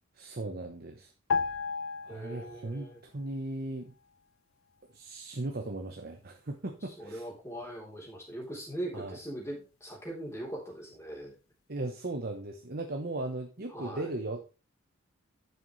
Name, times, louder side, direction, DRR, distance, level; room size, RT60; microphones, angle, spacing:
voice 1, 0.2-1.1 2.0-3.9 4.9-7.3 8.9-9.2 11.7-14.4, right 2 dB, 45° right, 5 dB, 0.9 m, -37 dB
sound 1, 1.3-2.9 3.2-3.4, left 5 dB, 70° left, 0.5 m, -33 dB
voice 2, 2.1-3.0 7.0-11.3 13.7-14.1, right 1 dB, 15° left, -2 dB, 3.3 m, -40 dB
11.0 x 6.9 x 3.2 m, 0.32 s
head